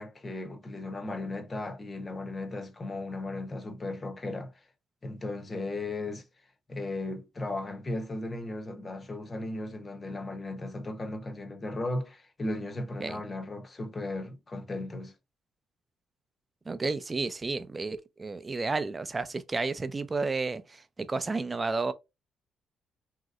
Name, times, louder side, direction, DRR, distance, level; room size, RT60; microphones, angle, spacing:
voice 1, 0.0-4.6 5.0-6.2 6.7-15.1, left 2 dB, 30° left, 0.8 m, -36 dB
voice 2, 16.7-21.9, right 3 dB, 25° right, 0.4 m, -32 dB
3.0 x 2.8 x 2.4 m
cardioid pair, 90°, 0 cm